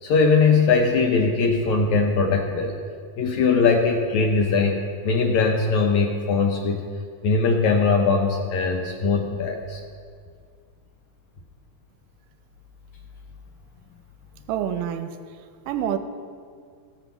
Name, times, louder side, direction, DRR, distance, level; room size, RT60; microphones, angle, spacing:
voice 1, 0.0-2.8 3.2-6.8 7.2-9.8, left 4 dB, 75° left, 1.8 m, -20 dB
voice 2, 14.5-15.2 15.7-16.0, right 10 dB, 80° right, 2.1 m, -26 dB
15.5 x 6.0 x 7.0 m
omnidirectional pair, 4.0 m